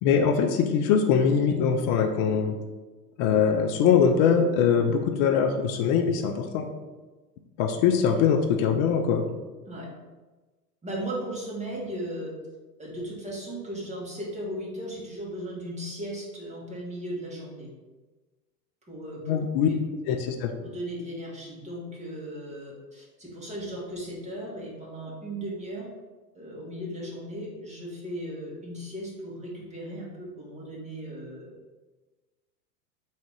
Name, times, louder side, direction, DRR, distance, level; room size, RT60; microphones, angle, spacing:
voice 1, 0.0-2.6 3.2-6.7 7.6-9.2 19.3-19.7 20.1-20.5, left 7 dB, 35° left, 5 dB, 0.4 m, -22 dB
voice 2, 10.8-12.3 12.8-17.7 18.9-19.7 20.6-25.9 26.3-31.5, right 1 dB, 15° right, -5 dB, 1.4 m, -36 dB
3.6 x 2.8 x 4.7 m, 1.2 s
hypercardioid pair, 100°, 49 cm